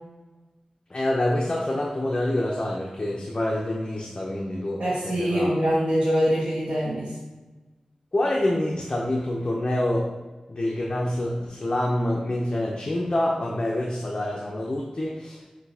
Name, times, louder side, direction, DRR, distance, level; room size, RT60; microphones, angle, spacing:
voice 1, 0.9-5.5 8.1-10.1 10.5-15.4, left 1 dB, 40° left, -2 dB, 0.5 m, -26 dB
voice 2, 4.8-7.1, equal, 75° right, -9 dB, 1.1 m, -23 dB
6.0 x 2.7 x 2.7 m, 1.2 s
wide cardioid pair, 85°, 2 cm